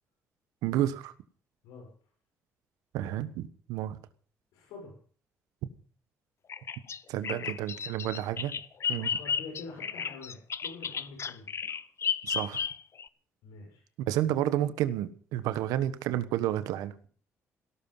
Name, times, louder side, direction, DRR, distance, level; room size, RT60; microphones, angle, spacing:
voice 1, 0.6-1.1 2.9-4.0 7.1-8.5 8.9-9.1 12.2-12.6 14.1-16.9, right 12 dB, 85° right, 13 dB, 1.3 m, -30 dB
voice 2, 4.5-5.0 7.3-7.5 8.9-11.5 13.4-13.8, left 4 dB, 90° left, 1 dB, 6.8 m, -46 dB
Bird vocalization bird call bird song, 6.5-13.1, left 7 dB, 50° left, 1.0 m, -33 dB
17.0 x 13.5 x 5.6 m, 0.43 s
supercardioid pair, 70°, 6 cm